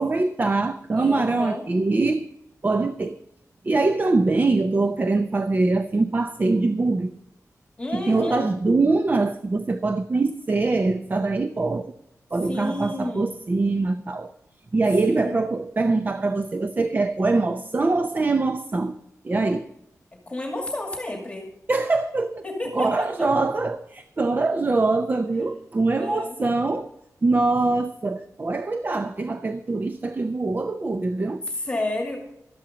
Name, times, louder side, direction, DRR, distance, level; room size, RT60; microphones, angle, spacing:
voice 1, 0.0-2.3 2.6-3.2 3.6-7.1 7.9-11.9 12.3-14.3 14.7-19.0 19.2-19.7 21.7-22.4 22.7-26.9 27.2-31.4, right 3 dB, 30° right, 0.6 m, -23 dB
voice 2, 1.0-1.6 7.8-8.5 12.4-13.3 15.0-15.4 20.3-21.5 22.4-23.3 26.0-26.4 31.5-32.2, left 1 dB, 20° left, 2.3 m, -31 dB
13.0 x 10.5 x 5.1 m
wide cardioid pair, 145°, 6 cm